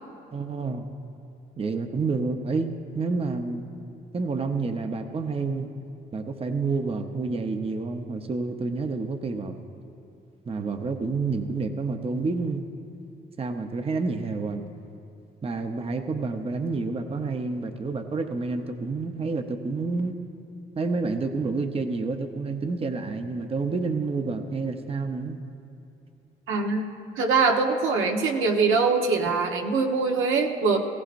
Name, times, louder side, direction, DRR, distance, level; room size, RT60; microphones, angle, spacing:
voice 1, 0.3-0.8 1.6-3.6 4.1-5.7 6.1-9.5 10.5-12.7 13.4-14.6 15.4-20.2 20.8-25.4, right 4 dB, 30° right, 6 dB, 0.7 m, -29 dB
voice 2, 26.5-26.9 27.1-30.8, right 4 dB, 85° right, 1 dB, 1.1 m, -23 dB
18.0 x 15.5 x 2.6 m, 2.7 s
cardioid pair, 90°, 20 cm